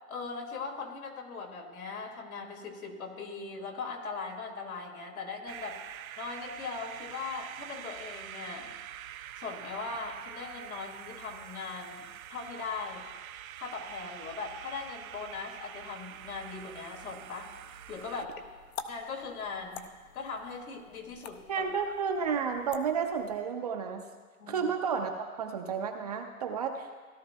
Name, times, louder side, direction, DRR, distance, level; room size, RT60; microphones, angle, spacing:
voice 1, 0.1-5.8 6.2-8.7 9.4-13.1 13.6-17.5 17.9-18.4 18.9-19.8 20.1-21.7 24.4-24.6, left 4 dB, 75° left, 2 dB, 2.2 m, -39 dB
sound 1, 5.5-18.3, right 11 dB, 70° right, 0.6 m, -45 dB
sound 2, 17.6-23.4, left 6 dB, 45° left, 0.7 m, -48 dB
voice 2, 21.5-24.0 24.5-26.9, right 6 dB, 30° right, 4 dB, 0.5 m, -32 dB
17.0 x 12.0 x 2.2 m, 1.5 s
hypercardioid pair, 145°, 44 cm